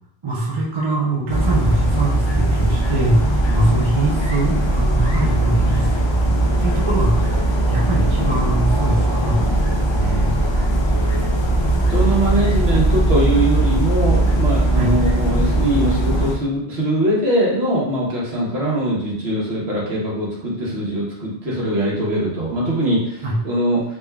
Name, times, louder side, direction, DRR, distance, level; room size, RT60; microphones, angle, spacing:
voice 1, 0.2-10.6 14.7-14.9 23.2-23.4, right 2 dB, 35° right, -3 dB, 0.6 m, -23 dB
sound 1, 1.3-16.3, right 1 dB, 40° left, 0.4 m, -19 dB
voice 2, 11.9-23.8, right 1 dB, 75° right, -5 dB, 1.4 m, -21 dB
3.6 x 3.4 x 2.3 m, 0.74 s
omnidirectional pair, 1.1 m